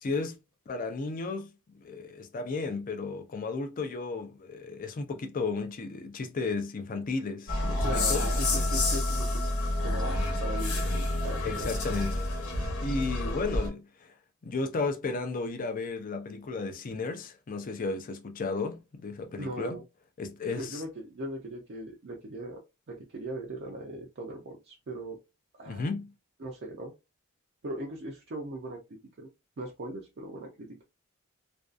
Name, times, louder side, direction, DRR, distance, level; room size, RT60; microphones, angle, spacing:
voice 1, 0.0-0.4 0.7-1.5 1.8-8.2 11.4-12.2 12.8-14.1 14.4-19.8 20.2-20.8 25.7-26.1, left 3 dB, 40° left, 0.4 m, -34 dB
sound 1, 7.5-13.7, left 1 dB, 85° left, 1.0 m, -29 dB
voice 2, 7.8-9.3 9.8-10.8 11.2-11.7 19.4-19.8 20.5-25.2 25.6-25.9 26.4-26.9 27.6-28.8 29.2-29.3 29.6-30.8, right 1 dB, 50° right, 0.5 m, -39 dB
2.5 x 2.3 x 2.4 m
head